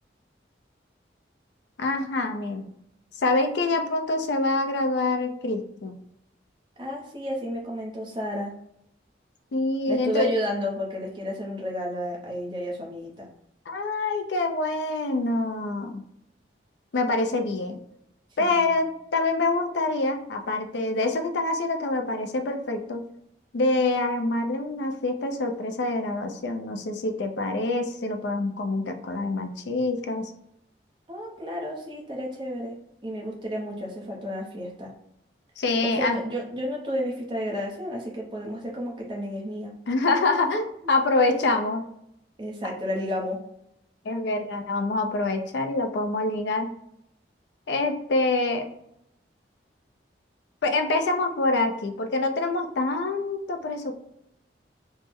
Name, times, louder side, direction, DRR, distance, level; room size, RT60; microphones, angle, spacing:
voice 1, 1.8-2.7 3.1-5.9 9.5-10.3 13.7-16.0 16.9-17.8 18.4-23.0 23.5-30.3 35.6-36.2 39.9-41.8 44.0-46.7 47.7-48.6 50.6-53.9, left 2 dB, 70° left, 5 dB, 0.4 m, -26 dB
voice 2, 6.8-8.5 9.9-13.3 18.4-18.7 31.1-32.8 33.0-34.9 35.8-39.7 42.4-43.4, equal, 25° right, -2 dB, 0.6 m, -32 dB
3.2 x 2.0 x 3.5 m, 0.76 s
head